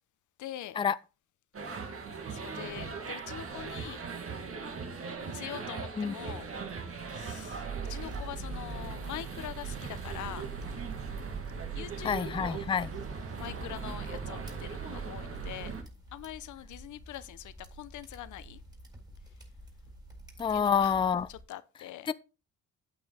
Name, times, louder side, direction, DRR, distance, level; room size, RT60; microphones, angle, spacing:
voice 1, 0.4-0.8 2.3-4.0 5.2-6.4 7.1-10.5 11.7-12.6 13.4-15.7 16.1-18.6 20.5-20.9 21.3-22.1, left 13 dB, 75° left, 0.9 m, -43 dB
sound 1, 1.5-15.8, right 5 dB, 50° right, 2.0 m, -39 dB
sound 2, 8.0-21.4, equal, 15° right, 3.8 m, -50 dB
voice 2, 12.0-12.9 20.4-21.3 22.1-22.2, left 7 dB, 15° left, 0.4 m, -27 dB
8.9 x 8.6 x 3.6 m
cardioid pair, 90°, 30 cm